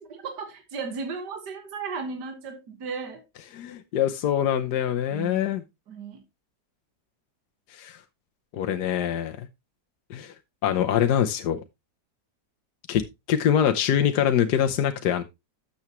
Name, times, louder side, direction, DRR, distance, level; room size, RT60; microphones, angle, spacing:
voice 1, 0.0-3.2 5.1-5.4 5.9-6.2, right 5 dB, 70° right, 2.1 m, -35 dB
voice 2, 3.5-5.6 7.7-8.0 8.5-9.5 10.1-10.3 10.6-11.6 12.9-13.0 13.3-15.2, left 9 dB, 70° left, 1.3 m, -24 dB
12.5 x 7.1 x 3.0 m
omnidirectional pair, 1.9 m